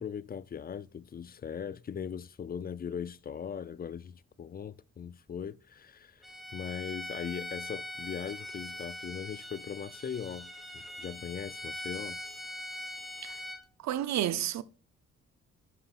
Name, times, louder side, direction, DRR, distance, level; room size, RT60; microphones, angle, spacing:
voice 1, 0.0-6.3 6.5-12.2, left 7 dB, 30° left, 0.5 m, -39 dB
Bowed string instrument, 6.2-13.6, left 1 dB, ahead, 1.6 m, -42 dB
voice 2, 13.8-14.6, right 11 dB, 65° right, 0.7 m, -31 dB
11.0 x 5.8 x 2.5 m
cardioid pair, 90°, 30 cm